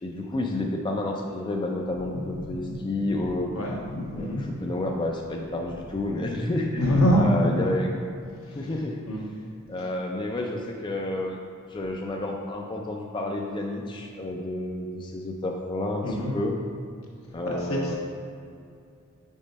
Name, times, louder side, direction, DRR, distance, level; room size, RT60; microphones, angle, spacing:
voice 1, 0.0-3.5 4.1-6.8 7.1-7.9 8.5-9.0 9.7-11.4 11.7-16.6 17.3-17.9, left 2 dB, 20° left, 0 dB, 0.4 m, -30 dB
voice 2, 2.3-2.7 3.1-3.2 3.5-4.4 6.7-7.7 8.6-8.7 9.1-9.2 16.0-16.3 17.5-18.0, equal, 75° left, -3 dB, 1.3 m, -25 dB
5.4 x 4.0 x 5.3 m, 2.4 s
head